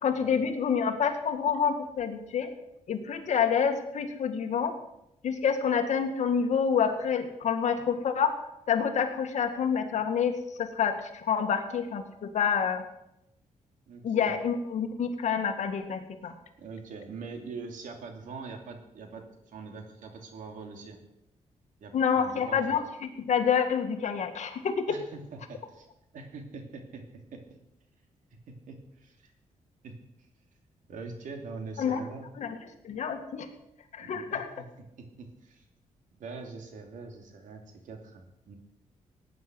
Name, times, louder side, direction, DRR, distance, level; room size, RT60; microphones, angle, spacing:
voice 1, 0.0-2.5 2.9-4.7 5.2-8.3 8.7-12.8 14.0-16.3 21.9-24.9 31.8-32.0 32.4-32.6 32.8-33.5 33.9-34.5, left 7 dB, 65° left, 6 dB, 1.9 m, -28 dB
voice 2, 13.9-14.3 16.6-21.0 21.8-22.8 24.9-25.9 26.1-27.6 28.5-29.3 29.8-29.9 30.9-32.3 34.0-34.6 35.0-35.6 36.2-38.6, right 4 dB, 85° right, 4 dB, 2.7 m, -43 dB
17.5 x 9.6 x 6.2 m, 0.85 s
cardioid pair, 130°, 13 cm